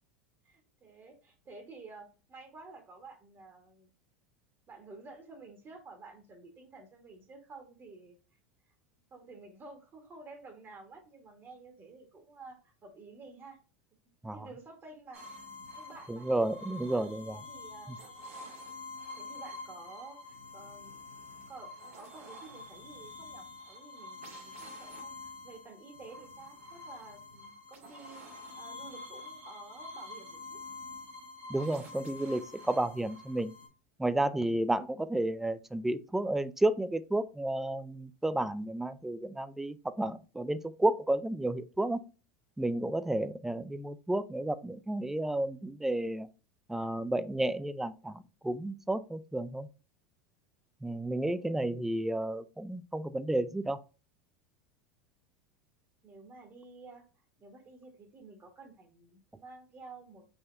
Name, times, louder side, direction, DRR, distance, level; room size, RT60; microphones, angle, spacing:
voice 1, 0.4-3.9 4.7-8.2 9.1-13.6 14.3-15.2 15.7-16.3 16.9-17.1 17.5-18.0 19.1-21.0 21.5-25.1 25.4-30.6 51.3-51.6 56.0-60.2, right 3 dB, 30° right, 1.4 m, -51 dB
sound 1, 15.1-33.7, left 3 dB, 85° right, 1.9 m, -47 dB
voice 2, 16.1-17.4 31.5-33.5 34.0-42.0 42.6-46.3 46.7-49.7 50.8-53.8, right 1 dB, 5° right, 0.4 m, -32 dB
5.5 x 2.8 x 3.3 m
hypercardioid pair, 100°, 7 cm